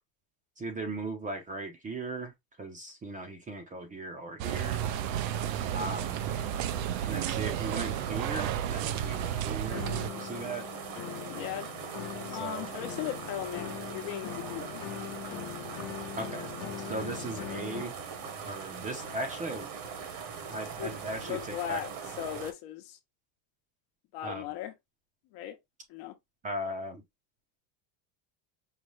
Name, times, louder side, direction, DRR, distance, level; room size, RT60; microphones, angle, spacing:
voice 1, 0.6-4.8 5.7-6.2 7.0-9.8 10.2-10.6 12.3-12.7 16.1-16.5 16.8-17.9 18.2-19.7 20.5-21.8 24.2-24.5 26.4-27.0, right 2 dB, 15° right, 0.6 m, -38 dB
sound 1, 4.4-22.5, right 6 dB, 55° right, 1.2 m, -41 dB
sound 2, 4.4-10.1, right 11 dB, 75° right, 0.7 m, -32 dB
sound 3, 9.7-17.9, left 12 dB, 35° left, 0.4 m, -41 dB
voice 2, 11.3-11.7 12.3-14.8 20.8-21.0 21.3-23.0 24.1-24.7 25.3-25.6 25.9-26.1, left 12 dB, 55° left, 0.9 m, -38 dB
5.5 x 2.3 x 3.1 m
cardioid pair, 150°, 50 cm